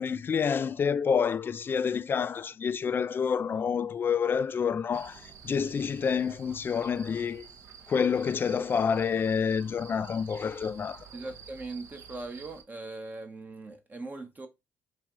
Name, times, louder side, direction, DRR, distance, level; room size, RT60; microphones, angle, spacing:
voice 1, 0.0-7.5 7.9-11.1, left 6 dB, 40° left, 0.3 m, -28 dB
sound 1, 4.9-12.6, right 6 dB, 65° right, 0.7 m, -50 dB
voice 2, 11.1-14.5, right 3 dB, 30° right, 0.8 m, -40 dB
4.1 x 2.3 x 3.6 m
supercardioid pair, 75°, 6 cm